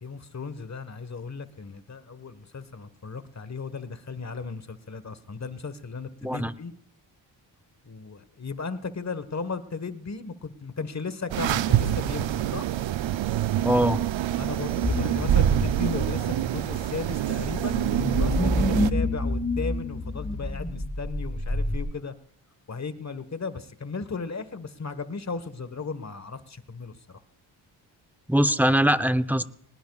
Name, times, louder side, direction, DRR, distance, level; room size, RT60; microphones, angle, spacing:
voice 1, 0.0-6.7 7.8-12.7 14.4-17.8 18.1-22.1 22.7-27.2, left 4 dB, 35° left, 13 dB, 1.4 m, -36 dB
voice 2, 6.2-6.5 13.6-14.0 28.3-29.4, equal, 5° right, 12 dB, 0.8 m, -22 dB
sound 1, 11.3-18.9, right 12 dB, 70° right, 0.6 m, -26 dB
sound 2, 14.8-21.8, left 1 dB, 15° left, 3.6 m, -28 dB
20.5 x 19.0 x 2.4 m, 0.63 s
cardioid pair, 55°, 47 cm